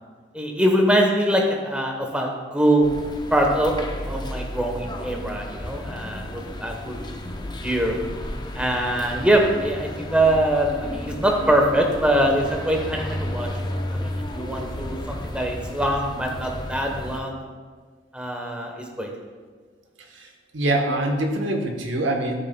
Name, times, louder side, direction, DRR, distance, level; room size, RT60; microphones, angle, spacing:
voice 1, 0.3-2.9 3.3-7.0 7.6-7.9 8.5-13.5 13.9-17.4 18.1-19.1, right 1 dB, 5° right, 1 dB, 1.0 m, -23 dB
sound 1, 2.8-17.2, left 1 dB, 25° left, 0.5 m, -33 dB
voice 2, 20.1-22.3, right 1 dB, 80° right, 3 dB, 1.1 m, -24 dB
12.5 x 6.4 x 2.2 m, 1.5 s
head